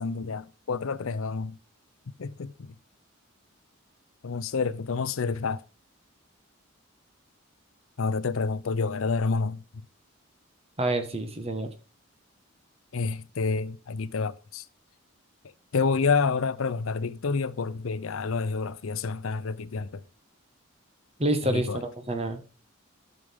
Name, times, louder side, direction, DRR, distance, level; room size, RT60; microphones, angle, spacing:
voice 1, 0.0-1.6 2.2-2.8 4.2-5.6 8.0-9.6 12.9-14.6 15.7-20.0 21.4-21.8, left 4 dB, 75° left, 0.5 m, -28 dB
voice 2, 10.8-11.7 21.2-22.4, right 1 dB, 30° right, 1.4 m, -28 dB
12.0 x 6.5 x 3.5 m
head